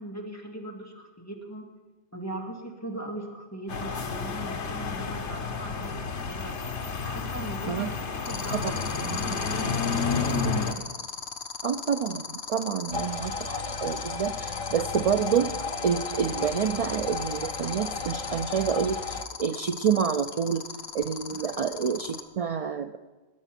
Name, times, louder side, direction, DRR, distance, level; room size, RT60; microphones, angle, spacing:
voice 1, 0.0-1.7 2.1-6.6 7.0-10.6 21.3-21.6, right 1 dB, 15° left, 0 dB, 2.2 m, -40 dB
sound 1, 3.7-10.7, left 4 dB, 80° left, 1.4 m, -30 dB
scroll matrix, 8.3-22.2, left 6 dB, 65° left, 1.2 m, -37 dB
voice 2, 11.6-15.5 15.8-20.6 20.9-23.0, right 7 dB, 60° right, 9 dB, 0.3 m, -28 dB
sound 2, 12.9-19.3, left 4 dB, 35° left, 0.6 m, -35 dB
20.0 x 9.0 x 5.9 m, 1.3 s
omnidirectional pair, 1.2 m